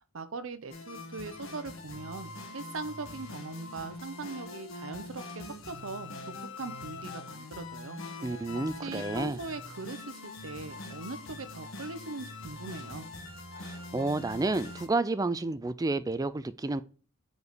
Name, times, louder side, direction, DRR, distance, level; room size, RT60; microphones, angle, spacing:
voice 1, 0.1-8.0 8.8-13.1, right 3 dB, 70° right, 0.7 m, -41 dB
sound 1, 0.7-14.9, left 2 dB, 70° left, 1.3 m, -43 dB
voice 2, 8.2-9.4 13.6-16.8, right 2 dB, 15° right, 0.4 m, -30 dB
5.2 x 4.7 x 4.0 m
head